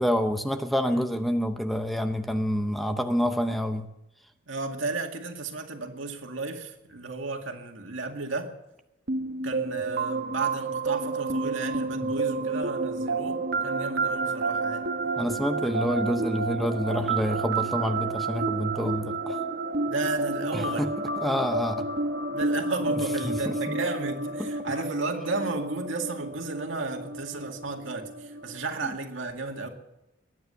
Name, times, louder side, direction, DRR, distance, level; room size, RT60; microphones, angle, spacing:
voice 1, 0.0-3.9 15.2-19.4 20.5-21.9 23.2-23.8 24.4-24.5, equal, ahead, 7 dB, 0.7 m, -28 dB
voice 2, 4.5-8.5 9.4-14.9 19.9-20.9 22.3-29.7, right 3 dB, 80° right, 3 dB, 2.1 m, -33 dB
sound 1, 9.1-28.6, right 3 dB, 55° right, 1.2 m, -30 dB
22.0 x 9.5 x 6.8 m, 0.92 s
head